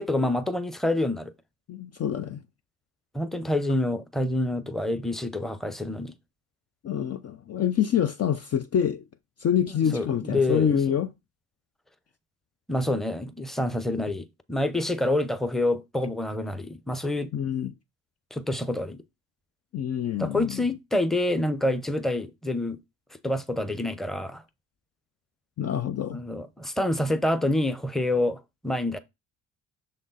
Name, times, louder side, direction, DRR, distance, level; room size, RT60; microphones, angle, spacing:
voice 1, 0.0-1.3 3.1-6.1 9.7-11.0 12.7-17.3 18.3-19.0 20.2-22.8 23.2-24.4 26.1-29.0, left 1 dB, ahead, 0.8 m, -27 dB
voice 2, 1.7-2.4 6.8-9.0 9.4-11.1 17.3-17.7 19.7-20.6 25.6-26.2, left 9 dB, 35° left, 0.5 m, -26 dB
6.5 x 3.8 x 3.9 m
hypercardioid pair, 50°, 41 cm